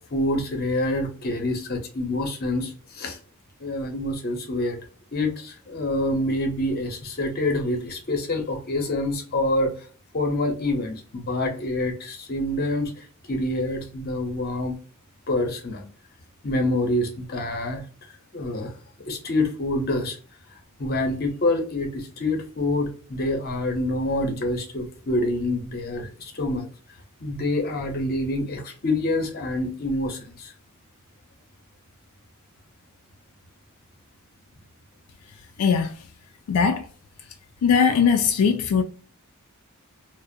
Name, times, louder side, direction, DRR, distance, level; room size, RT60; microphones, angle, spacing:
voice 1, 0.1-3.2 3.6-4.8 5.1-9.7 10.1-14.8 15.3-15.8 16.4-17.8 18.3-18.7 19.1-20.2 20.8-26.7 27.2-30.5, left 1 dB, 45° left, 0.7 m, -26 dB
voice 2, 36.5-36.8 37.6-38.8, left 6 dB, 85° left, 0.3 m, -19 dB
2.4 x 2.0 x 2.5 m
head